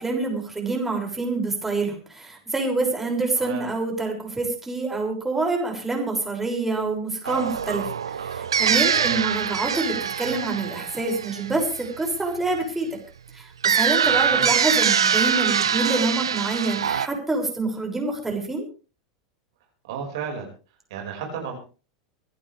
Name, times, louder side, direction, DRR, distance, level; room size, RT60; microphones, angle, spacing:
voice 1, 0.0-7.9 8.2-13.0 13.3-18.6, right 3 dB, 10° right, 1 dB, 6.5 m, -26 dB
voice 2, 3.4-3.7 8.9-9.3 14.0-14.5 19.9-20.5 20.9-21.6, right 6 dB, 65° right, 2 dB, 5.4 m, -33 dB
sound 1, 7.2-12.1 13.6-17.1, right 7 dB, 80° right, 0.8 m, -23 dB
25.5 x 11.0 x 3.5 m, 0.35 s
hypercardioid pair, 85°, 3 cm